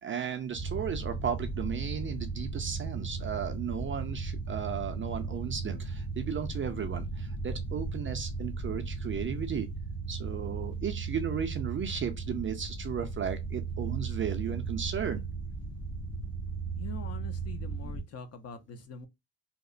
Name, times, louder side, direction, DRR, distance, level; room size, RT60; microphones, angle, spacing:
voice 1, 0.0-9.7 10.1-15.2, right 7 dB, 30° right, 0.4 m, -35 dB
sound 1, 0.5-18.0, right 4 dB, 60° left, 1.0 m, -36 dB
voice 2, 16.8-19.1, left 6 dB, 40° left, 0.5 m, -44 dB
2.9 x 2.0 x 2.4 m
cardioid pair, 110°, 39 cm